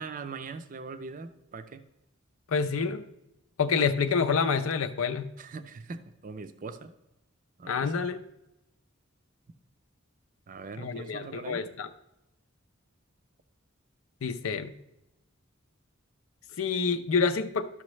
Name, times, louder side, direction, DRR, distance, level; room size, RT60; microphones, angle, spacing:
voice 1, 0.0-1.8 5.4-6.9 7.6-7.9 10.5-11.6, right 4 dB, 40° right, 10 dB, 0.5 m, -41 dB
voice 2, 2.5-3.0 3.6-5.3 7.7-8.2 10.8-11.9 14.2-14.7 16.6-17.7, left 5 dB, 85° left, 8 dB, 0.6 m, -27 dB
12.0 x 6.2 x 3.1 m, 0.89 s
head